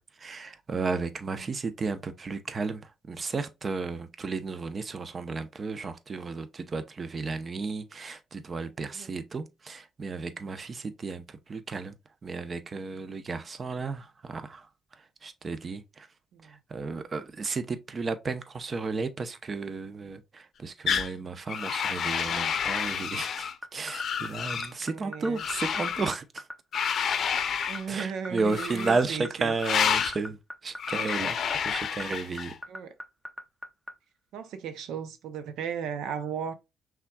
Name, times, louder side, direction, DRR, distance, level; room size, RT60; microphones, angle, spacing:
voice 1, 0.0-11.9 12.2-14.7 15.2-16.1 16.4-26.5 27.9-30.4 30.6-31.4 31.6-32.5, right 4 dB, 40° right, 0.7 m, -33 dB
sound 1, 20.9-21.1 21.5-23.5 23.9-24.7 25.4-26.1 26.7-27.8 28.5-29.1 29.6-30.2 30.8-32.5, left 7 dB, 60° left, 0.6 m, -29 dB
sound 2, 23.4-33.9, equal, 10° right, 0.9 m, -38 dB
voice 2, 24.8-25.4 27.7-29.5 32.7-32.9 34.3-36.5, right 7 dB, 85° right, 0.6 m, -36 dB
5.6 x 3.6 x 2.3 m
cardioid pair, 90°, 0 cm